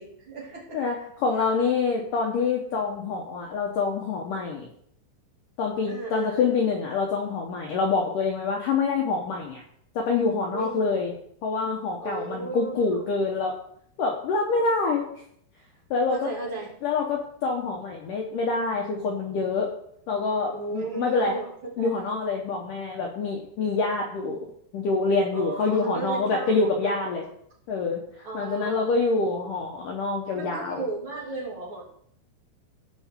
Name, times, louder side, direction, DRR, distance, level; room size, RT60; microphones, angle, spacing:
voice 1, 0.0-0.8 5.9-6.5 10.5-10.9 12.0-13.0 16.1-16.7 20.5-21.5 21.8-21.9 25.3-27.1 28.2-28.9 30.3-31.8, right 3 dB, 35° right, -5 dB, 2.7 m, -34 dB
voice 2, 0.7-4.7 5.6-9.6 10.0-11.1 11.4-13.6 14.0-15.0 15.9-16.3 16.8-19.7 20.1-21.4 21.8-24.4 24.7-27.2 27.7-28.0 28.3-30.8, left 4 dB, 75° left, 0 dB, 1.9 m, -26 dB
16.5 x 5.6 x 3.7 m, 0.67 s
omnidirectional pair, 5.3 m